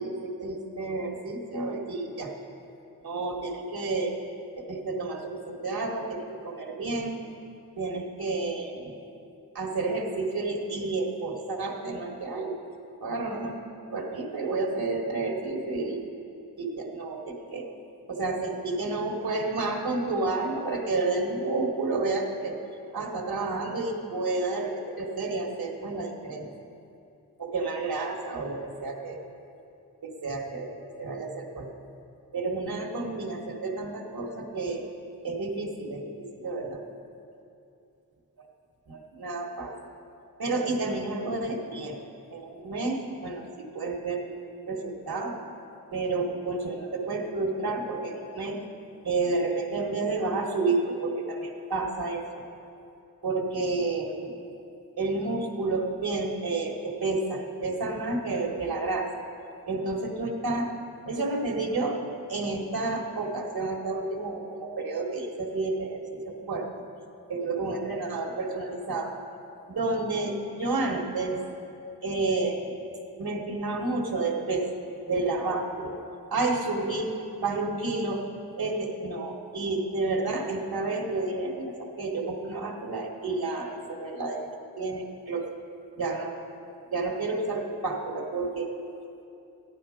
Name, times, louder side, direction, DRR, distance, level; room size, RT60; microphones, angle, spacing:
voice 1, 0.0-2.3 3.0-4.1 4.7-7.2 7.8-8.9 9.5-12.6 13.0-13.6 13.9-16.0 16.6-17.7 18.1-22.6 22.9-26.5 27.4-29.2 30.0-30.7 31.0-31.7 32.3-34.8 35.2-36.8 38.9-39.7 40.4-42.0 42.3-44.3 44.7-45.4 45.9-48.6 49.0-52.4 53.2-54.3 55.0-59.1 59.7-60.7 61.1-62.0 62.3-66.7 67.3-69.2 69.7-71.4 72.0-72.7 73.2-74.7 75.1-76.0 76.3-77.1 77.4-78.2 78.6-85.5 85.9-86.5 86.9-88.7, right 3 dB, 60° right, 1 dB, 1.6 m, -30 dB
14.5 x 11.5 x 5.0 m, 2.7 s
wide cardioid pair, 95°, 41 cm